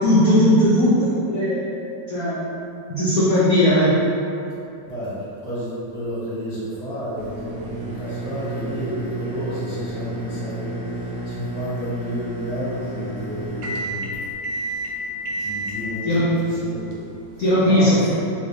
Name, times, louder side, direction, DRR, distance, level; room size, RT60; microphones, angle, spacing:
voice 1, 0.0-1.6 2.1-2.4 2.9-3.9 16.1-16.4 17.4-18.1, equal, 70° left, -9 dB, 0.8 m, -18 dB
voice 2, 4.9-14.2 14.5-14.8 15.2-16.9 17.3-18.1, equal, 20° left, -12 dB, 1.0 m, -31 dB
sound 1, 7.2-17.5, right 1 dB, 80° right, 0.7 m, -31 dB
3.2 x 2.7 x 2.8 m, 2.7 s
omnidirectional pair, 2.0 m